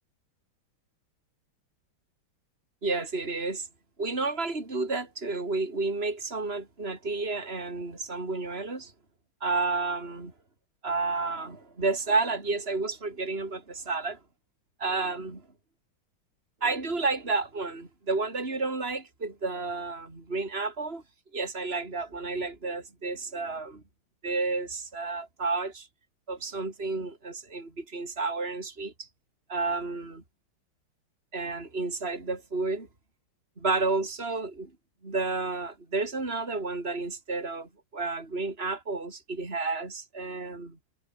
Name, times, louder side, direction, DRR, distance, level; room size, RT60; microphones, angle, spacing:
voice 1, 2.8-3.7 4.0-8.9 9.4-10.3 10.8-14.2 14.8-15.4 16.6-21.0 21.3-23.8 24.2-25.9 26.3-29.1 29.5-30.2 31.3-32.9 33.6-34.7 35.0-40.8, right 3 dB, 25° right, 4.6 m, -31 dB
omnidirectional pair, 2.3 m